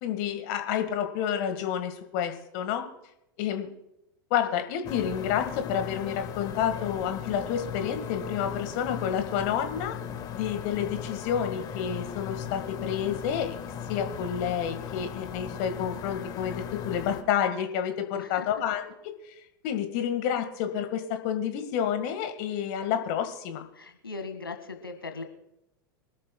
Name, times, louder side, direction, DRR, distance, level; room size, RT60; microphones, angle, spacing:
voice 1, 0.0-2.9 3.4-3.7 4.3-10.0 10.3-13.6 13.9-18.9 19.6-23.7, left 9 dB, 50° left, 7 dB, 1.8 m, -29 dB
sound 1, 4.8-17.2, left 8 dB, 35° left, 1.5 m, -37 dB
voice 2, 18.1-18.5 23.7-25.2, left 3 dB, 85° left, 6 dB, 1.9 m, -39 dB
25.0 x 13.0 x 2.3 m, 0.84 s
figure-of-eight pair, 90°, 12 cm